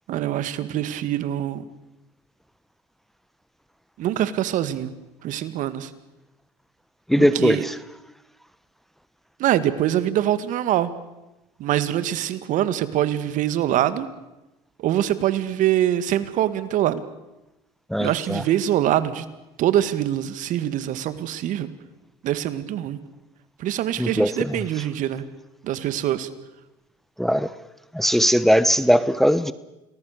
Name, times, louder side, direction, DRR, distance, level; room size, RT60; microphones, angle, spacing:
voice 1, 0.1-1.6 4.0-4.9 5.2-5.9 7.2-7.6 9.4-10.9 11.6-14.1 14.8-17.0 18.0-19.3 19.6-21.7 22.2-23.0 23.6-25.2 25.6-26.3, right 12 dB, 60° right, 2.1 m, -24 dB
voice 2, 7.1-7.8 17.9-18.4 24.0-24.9 27.2-27.5 27.9-29.5, equal, ahead, 1.0 m, -20 dB
29.5 x 20.5 x 6.8 m
hypercardioid pair, 85°, 15 cm